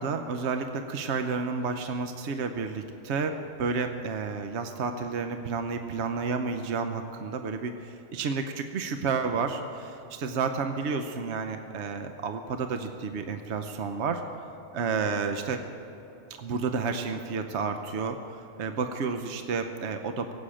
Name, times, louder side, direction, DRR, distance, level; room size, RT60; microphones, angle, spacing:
voice 1, 0.0-14.2 14.7-15.6 16.4-20.3, right 5 dB, 70° right, 6 dB, 1.1 m, -31 dB
18.0 x 8.5 x 8.7 m, 3.0 s
omnidirectional pair, 1.2 m